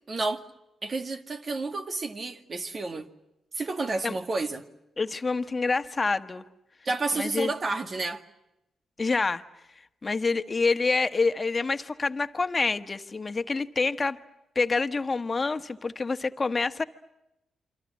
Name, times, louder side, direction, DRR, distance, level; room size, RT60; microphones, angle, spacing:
voice 1, 0.1-0.4 0.8-3.1 3.5-4.7 6.9-8.2, right 3 dB, 45° right, 2.0 m, -30 dB
voice 2, 5.0-6.4 7.1-7.5 9.0-9.4 10.0-14.2 14.5-16.8, left 4 dB, 35° left, 1.5 m, -27 dB
28.0 x 25.5 x 7.2 m
supercardioid pair, 60°, 0 cm